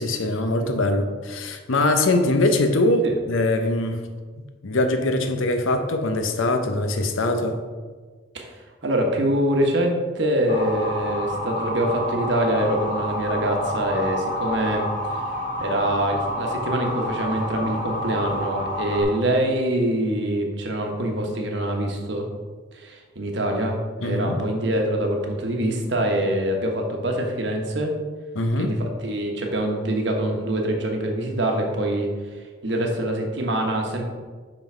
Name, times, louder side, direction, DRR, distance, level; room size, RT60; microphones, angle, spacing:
voice 1, 0.0-4.0 4.4-7.6 24.0-24.4 28.3-28.7, left 2 dB, 80° left, 6 dB, 0.7 m, -22 dB
voice 2, 8.8-14.8 15.6-22.3 22.7-27.9 28.6-32.1 32.6-34.0, right 1 dB, 60° right, 2 dB, 1.1 m, -24 dB
Motor vehicle (road) / Siren, 10.5-19.0, equal, 40° left, 1.8 m, -29 dB
5.9 x 5.4 x 4.4 m, 1.5 s
head